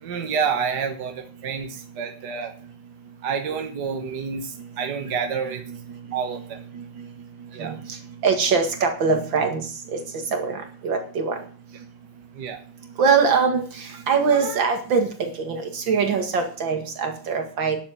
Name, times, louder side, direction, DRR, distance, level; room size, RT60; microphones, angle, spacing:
voice 1, 0.0-2.5 3.2-5.6 6.1-6.6 7.5-7.7 12.3-12.6, right 6 dB, 65° right, 5 dB, 1.8 m, -28 dB
voice 2, 5.2-5.8 6.3-6.4 6.7-6.8 7.6-7.8 8.2-10.0 10.3-11.4 13.0-17.8, right 5 dB, 85° right, 5 dB, 2.7 m, -23 dB
10.5 x 7.3 x 7.8 m, 0.42 s
omnidirectional pair, 2.0 m